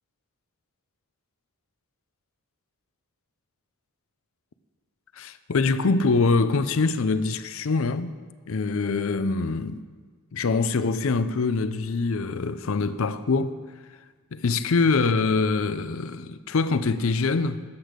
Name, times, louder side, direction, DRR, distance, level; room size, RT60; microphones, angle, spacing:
voice 1, 5.2-8.1 8.5-9.9 10.3-13.6 14.3-17.6, left 4 dB, 65° left, 0.5 m, -24 dB
13.0 x 8.0 x 5.1 m
head